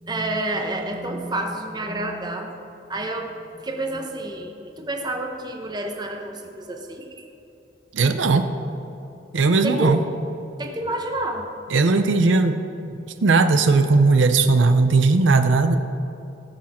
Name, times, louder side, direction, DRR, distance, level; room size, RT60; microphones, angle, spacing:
voice 1, 0.0-2.5 2.9-3.3 3.6-7.2 9.6-9.9 10.6-11.5, right 2 dB, 20° right, 3 dB, 0.9 m, -29 dB
voice 2, 7.9-8.5 9.3-10.0 11.7-12.6 12.9-15.8, right 3 dB, 85° right, 8 dB, 0.6 m, -18 dB
18.0 x 6.4 x 4.3 m, 2.7 s
head